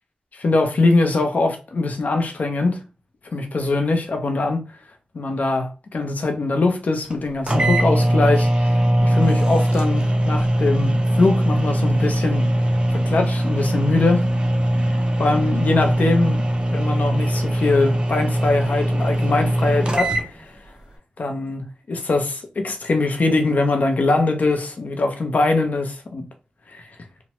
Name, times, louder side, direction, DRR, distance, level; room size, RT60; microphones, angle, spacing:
voice 1, 0.3-2.8 3.3-4.6 5.1-12.5 12.9-14.2 15.2-16.4 16.7-20.5 21.2-26.2 26.7-26.9, left 3 dB, 60° left, 0.6 m, -22 dB
sound 1, 7.1-7.2 7.5-20.3, right 1 dB, 30° right, 0.6 m, -20 dB
3.0 x 2.1 x 2.9 m
cardioid pair, 55°, 3 cm